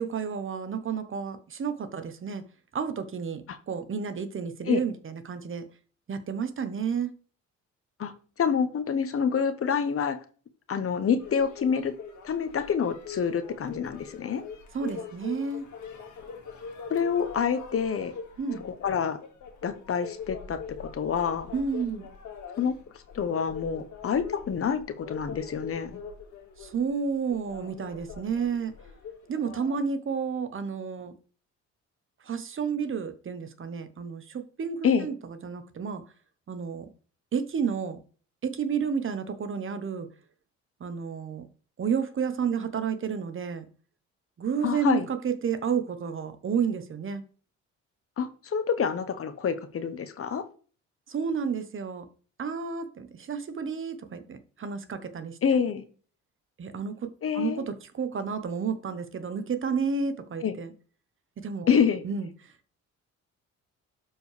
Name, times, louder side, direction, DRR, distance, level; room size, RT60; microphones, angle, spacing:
voice 1, 0.0-2.4 2.7-5.6 6.1-7.1 14.7-15.7 18.4-18.6 21.5-22.1 26.6-28.7 29.3-31.1 32.2-35.1 35.4-36.0 36.5-36.9 37.3-38.0 38.4-40.1 40.8-41.5 41.8-43.7 44.4-47.2 51.1-52.1 52.4-55.4 56.6-60.7 61.4-61.7 62.0-62.5, right 6 dB, 45° right, 1.0 m, -31 dB
voice 2, 8.4-10.2 10.7-11.9 12.2-14.4 16.9-18.1 18.6-19.2 19.6-21.5 22.6-22.8 23.1-26.0 34.8-35.1 44.6-45.1 48.2-50.4 55.4-55.8 57.2-57.6 60.4-60.5 61.7-62.0, left 7 dB, 45° left, 1.0 m, -27 dB
sound 1, 11.2-29.8, left 6 dB, 75° left, 1.9 m, -43 dB
12.0 x 4.6 x 3.3 m
cardioid pair, 90°, 30 cm